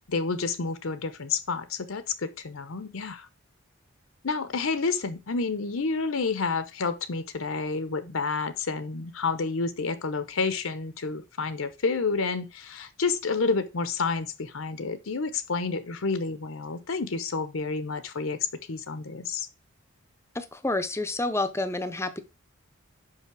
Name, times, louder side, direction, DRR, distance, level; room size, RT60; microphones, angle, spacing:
voice 1, 0.1-3.3 4.2-19.5, left 4 dB, 65° left, 0.8 m, -29 dB
voice 2, 20.3-22.2, left 2 dB, 10° left, 0.7 m, -29 dB
5.7 x 5.5 x 6.0 m
head